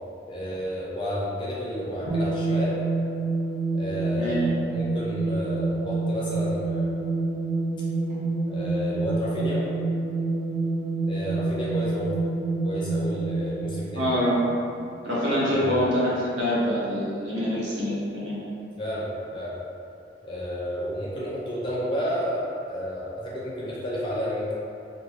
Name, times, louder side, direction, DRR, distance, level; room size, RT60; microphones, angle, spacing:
voice 1, 0.3-2.8 3.7-6.9 8.5-9.6 11.0-12.1 12.6-14.1 15.5-15.8 18.8-19.5 20.2-24.5, equal, 25° left, -7 dB, 0.5 m, -31 dB
sound 1, 2.1-14.9, right 3 dB, 80° left, 0.5 m, -28 dB
voice 2, 13.9-14.5 15.0-18.4, equal, 85° right, -8 dB, 0.8 m, -25 dB
2.5 x 2.2 x 3.1 m, 2.5 s
head